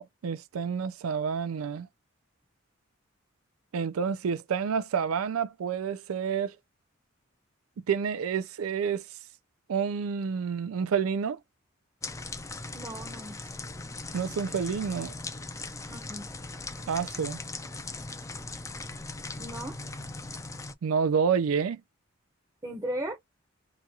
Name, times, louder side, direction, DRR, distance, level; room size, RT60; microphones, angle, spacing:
voice 1, 0.0-1.9 3.7-6.6 7.9-9.0 9.7-11.4 14.1-15.1 16.9-17.4 20.8-21.8, right 6 dB, 85° right, 0.4 m, -29 dB
sound 1, 12.0-20.7, left 3 dB, 15° left, 0.4 m, -39 dB
voice 2, 12.7-13.5 15.9-16.3 19.4-19.8 22.6-23.2, right 1 dB, 20° right, 0.7 m, -36 dB
2.9 x 2.3 x 2.7 m
head